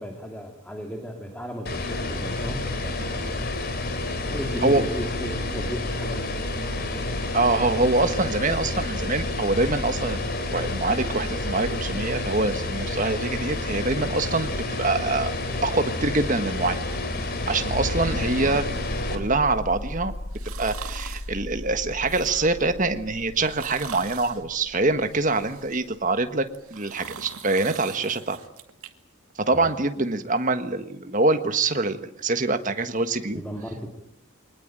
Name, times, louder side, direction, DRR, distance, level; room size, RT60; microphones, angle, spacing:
voice 1, 0.0-3.2 4.3-6.6 18.4-18.6 29.5-29.7 33.3-33.9, equal, 5° left, 3 dB, 2.7 m, -36 dB
sound 1, 1.7-19.2, left 2 dB, 45° left, 3.6 m, -29 dB
voice 2, 7.3-15.3 15.6-16.8 17.5-18.7 19.1-20.1 20.6-28.4 29.4-33.4, right 3 dB, 35° right, 9 dB, 1.5 m, -25 dB
sound 2, 17.7-26.1 27.6-27.7, left 1 dB, 80° left, 1.3 m, -36 dB
sound 3, 20.3-21.3 21.9-22.6 23.3-24.4 25.0-25.9 26.5-28.9 29.3-29.4, right 8 dB, 80° right, 2.1 m, -42 dB
24.0 x 19.5 x 8.9 m, 0.76 s
head